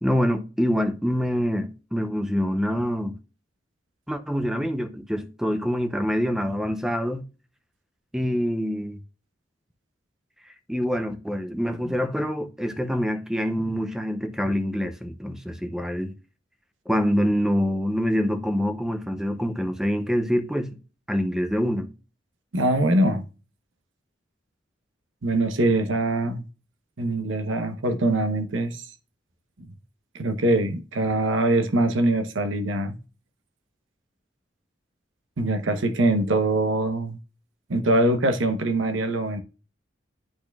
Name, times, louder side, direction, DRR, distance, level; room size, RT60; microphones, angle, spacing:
voice 1, 0.0-3.1 4.1-7.3 8.1-9.0 10.7-16.1 16.9-20.8 21.1-21.9, equal, 5° right, 0.6 m, -25 dB
voice 2, 22.5-23.2 25.2-26.4 27.0-28.8 30.1-33.0 35.4-37.2 37.7-39.4, right 2 dB, 80° right, 0.8 m, -23 dB
10.5 x 4.3 x 2.3 m
head